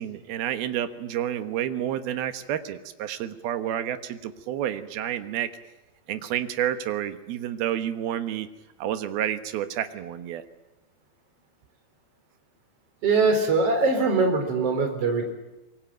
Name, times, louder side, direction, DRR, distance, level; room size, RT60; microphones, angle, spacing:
voice 1, 0.0-5.5 6.1-8.5 8.8-10.4, right 11 dB, 65° right, 10 dB, 2.9 m, -29 dB
voice 2, 13.0-15.3, right 3 dB, 35° right, 5 dB, 4.8 m, -22 dB
25.5 x 23.0 x 9.1 m, 0.99 s
omnidirectional pair, 5.2 m